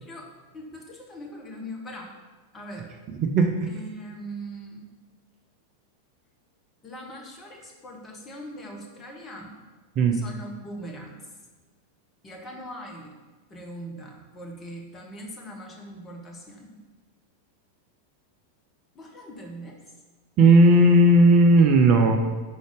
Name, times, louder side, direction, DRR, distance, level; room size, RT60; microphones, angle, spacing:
voice 1, 0.0-2.1 2.5-3.0 3.7-4.9 6.8-9.6 10.1-11.3 12.2-13.2 13.5-16.8 18.9-19.8, equal, 20° left, 1 dB, 1.1 m, -41 dB
voice 2, 3.2-3.7 10.0-10.2 20.4-22.2, right 1 dB, 35° right, 5 dB, 0.5 m, -16 dB
4.8 x 4.0 x 4.9 m, 1.3 s
figure-of-eight pair, 90°, 0 cm